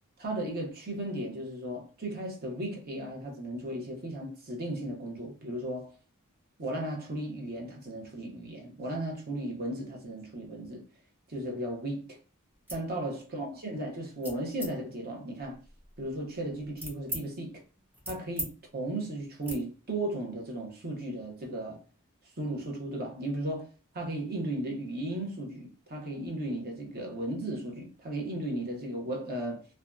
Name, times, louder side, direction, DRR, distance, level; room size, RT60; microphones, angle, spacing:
voice 1, 0.2-6.0 6.6-10.9 11.3-12.2 12.7-15.6 16.0-17.6 18.1-21.8 22.4-29.7, right 1 dB, 45° right, 0.7 m, -35 dB
sound 1, 12.5-12.9 13.3-13.7 14.2-14.7 15.4-17.2 17.6-18.5 18.8-19.0 19.4-19.6, equal, 10° right, 0.5 m, -41 dB
2.6 x 2.1 x 2.3 m
head